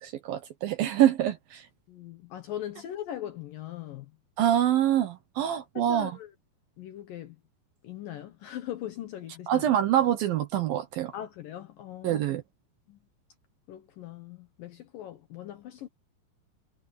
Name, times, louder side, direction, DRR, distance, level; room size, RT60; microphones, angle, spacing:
voice 1, 0.0-1.7 4.4-6.1 9.5-11.1 12.0-12.4, right 11 dB, 70° right, 2.4 m, -25 dB
voice 2, 1.9-4.1 5.8-6.3 6.8-7.4 7.8-9.7 11.1-12.2 12.9-13.0 13.7-15.9, left 11 dB, 70° left, 2.2 m, -40 dB
omnidirectional pair, 5.2 m